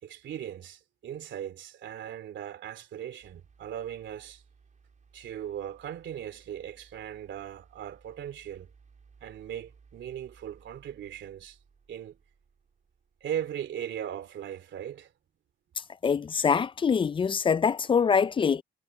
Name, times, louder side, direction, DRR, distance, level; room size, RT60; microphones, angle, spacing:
voice 1, 0.0-4.4 5.1-8.7 9.2-11.6 11.9-12.2 13.2-15.1, right 10 dB, 70° right, 2.9 m, -38 dB
sound 1, 3.2-15.5 16.7-16.8, right 5 dB, 40° right, 4.4 m, -60 dB
voice 2, 16.0-18.6, left 6 dB, 25° left, 0.4 m, -24 dB
cardioid pair, 90°, 20 cm